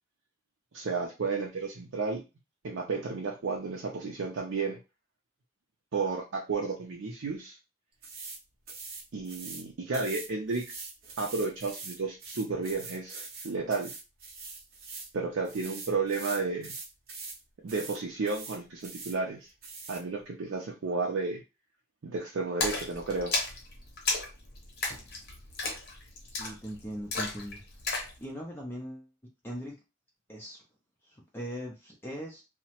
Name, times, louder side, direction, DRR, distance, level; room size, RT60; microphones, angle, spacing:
voice 1, 0.7-2.2 2.6-4.8 5.9-7.6 9.1-10.6 11.2-13.2 13.4-13.9 15.1-16.7 17.6-19.5 19.9-21.4 22.0-23.3, right 4 dB, 80° right, -1 dB, 0.5 m, -32 dB
sound 1, 8.0-8.4 8.7-9.6 9.9-15.1 15.4-17.4 17.7-18.0 18.2-19.2 19.6-20.0, right 4 dB, 50° right, 0.7 m, -43 dB
Splash splatter, 22.6-28.2, left 3 dB, 50° left, 0.7 m, -34 dB
voice 2, 26.4-27.6 28.2-29.1 29.4-29.7 30.3-30.6 31.1-32.4, equal, 10° left, -1 dB, 0.5 m, -40 dB
2.8 x 2.1 x 2.9 m, 0.27 s
head